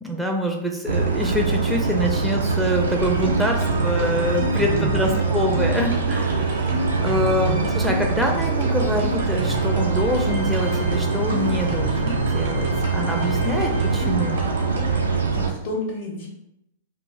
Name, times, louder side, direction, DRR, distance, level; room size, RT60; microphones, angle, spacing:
voice 1, 0.0-14.5, left 1 dB, ahead, 0 dB, 0.4 m, -26 dB
sound 1, 0.9-15.5, right 4 dB, 85° right, 0.3 m, -23 dB
sound 2, 2.8-15.1, left 2 dB, 65° right, 0.9 m, -33 dB
voice 2, 4.6-5.1 7.4-7.6 15.0-16.3, left 2 dB, 45° left, -3 dB, 0.5 m, -32 dB
2.3 x 2.1 x 3.7 m, 0.86 s
hypercardioid pair, 105°, 0 cm